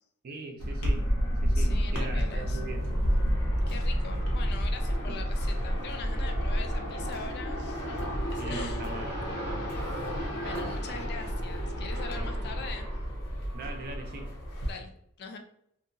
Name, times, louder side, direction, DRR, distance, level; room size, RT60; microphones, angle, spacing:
voice 1, 0.2-1.1 1.4-2.8 5.1-5.2 8.4-9.8 10.8-10.9 12.1-12.4 13.5-14.3, right 2 dB, 45° right, 4 dB, 0.4 m, -41 dB
sound 1, 0.6-14.7, equal, 90° left, 0.9 m, -30 dB
voice 2, 1.6-2.6 3.7-8.0 8.4-8.8 10.3-12.9 14.6-14.9 15.2-15.4, left 4 dB, 45° left, 5 dB, 0.4 m, -42 dB
sound 2, 2.8-3.3 3.7-4.1 4.5-5.0 5.4-5.7 6.3-6.7 7.1-7.5 8.0-8.4 8.8-9.3 9.7-10.1 10.5-11.0, equal, 85° right, 0.6 m, -44 dB
2.7 x 2.6 x 2.6 m, 0.72 s
head